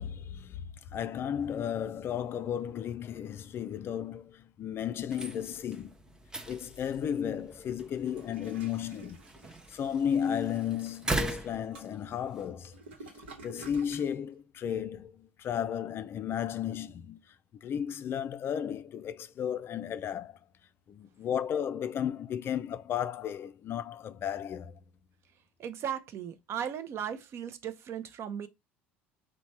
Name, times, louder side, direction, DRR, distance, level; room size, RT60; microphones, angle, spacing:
voice 1, 0.0-6.0 6.5-9.2 9.7-12.8 13.4-17.2 17.6-20.4 20.9-24.8, left 9 dB, 40° left, 0.3 m, -34 dB
sound 1, 5.0-12.5, right 2 dB, 10° right, 0.6 m, -40 dB
Toilet flush, 7.9-14.1, right 2 dB, 80° right, 0.9 m, -51 dB
voice 2, 25.6-28.5, right 9 dB, 50° right, 0.5 m, -37 dB
3.1 x 2.1 x 4.1 m
hypercardioid pair, 65°, 6 cm